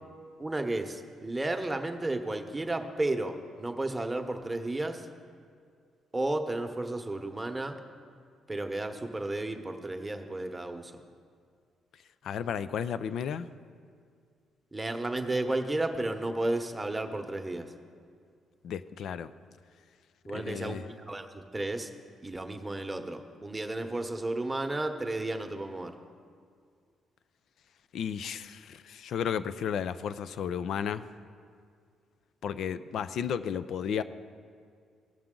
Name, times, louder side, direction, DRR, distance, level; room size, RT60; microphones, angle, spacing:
voice 1, 0.4-5.0 6.1-7.8 8.5-10.9 14.7-17.7 20.3-21.9 22.2-25.9, right 2 dB, 20° right, 5 dB, 0.9 m, -33 dB
voice 2, 12.2-13.5 18.6-19.3 20.3-20.8 27.9-31.0 32.4-34.0, left 8 dB, 70° left, 13 dB, 0.4 m, -33 dB
16.5 x 5.9 x 3.8 m, 2.1 s
supercardioid pair, 65°, 0 cm